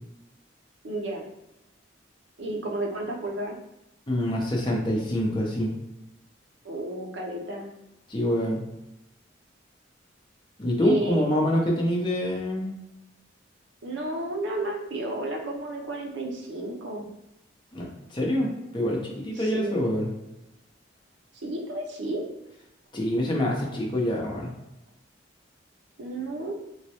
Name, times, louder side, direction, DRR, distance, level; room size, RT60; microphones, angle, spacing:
voice 1, 0.8-1.3 2.4-3.5 6.6-7.7 10.8-11.4 13.8-17.1 19.4-19.8 21.4-22.2 26.0-26.5, right 2 dB, 70° right, 0 dB, 0.6 m, -32 dB
voice 2, 4.1-5.7 8.1-8.6 10.6-12.7 17.7-20.1 22.9-24.5, left 1 dB, 25° left, -2 dB, 0.6 m, -26 dB
3.1 x 2.2 x 2.8 m, 0.91 s
head